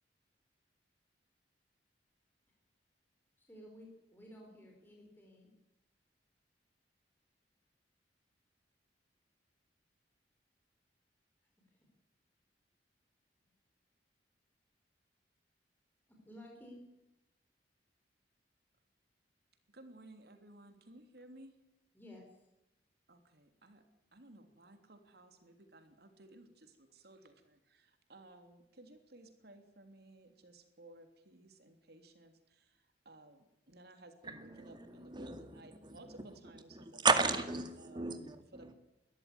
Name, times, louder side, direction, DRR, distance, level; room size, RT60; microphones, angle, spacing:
voice 1, 3.4-5.5 16.1-16.8 21.9-22.3, left 1 dB, 10° left, 0 dB, 4.2 m, -54 dB
voice 2, 19.7-21.6 23.1-23.8 24.1-37.1 37.8-38.1 38.5-38.7, right 1 dB, 60° right, 7 dB, 3.2 m, -57 dB
voice 3, 34.2-36.2 36.7-38.7, right 4 dB, 25° right, 8 dB, 2.1 m, -35 dB
21.5 x 14.0 x 9.6 m, 0.97 s
head